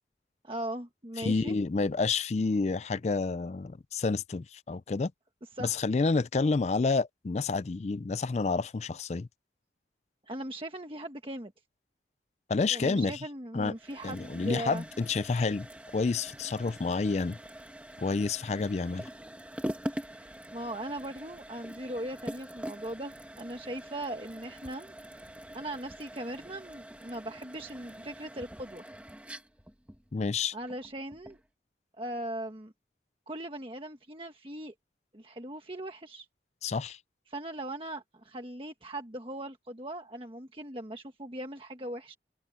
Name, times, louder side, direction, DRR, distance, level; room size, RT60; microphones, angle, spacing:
voice 1, 0.4-1.6 5.4-5.8 10.3-11.5 12.7-14.8 19.9-24.9 25.5-28.8 30.5-31.4 32.0-32.7 33.3-34.7 35.1-36.3 37.3-42.2, right 1 dB, 30° right, 1.4 m, -39 dB
voice 2, 1.2-5.1 5.6-9.3 12.5-13.1 13.5-13.7 14.0-15.7 15.9-17.4 18.0-19.1 30.1-30.5 36.6-37.0, left 4 dB, 40° left, 0.4 m, -29 dB
sound 1, 13.8-31.5, equal, 10° right, 1.5 m, -44 dB
head